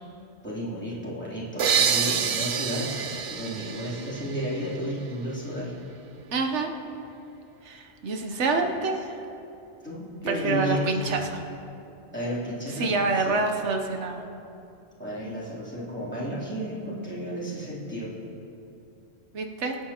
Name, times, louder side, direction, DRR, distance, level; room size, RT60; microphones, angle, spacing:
voice 1, 0.4-5.7 9.8-10.9 12.1-13.7 15.0-18.1, equal, 10° left, -9 dB, 3.2 m, -33 dB
sound 1, 1.6-5.2, right 7 dB, 70° right, 1.0 m, -27 dB
voice 2, 6.3-6.7 7.6-9.2 10.3-11.4 12.7-14.2 19.3-19.8, right 3 dB, 90° right, 4 dB, 1.2 m, -27 dB
25.5 x 8.7 x 2.9 m, 2.8 s
omnidirectional pair, 1.2 m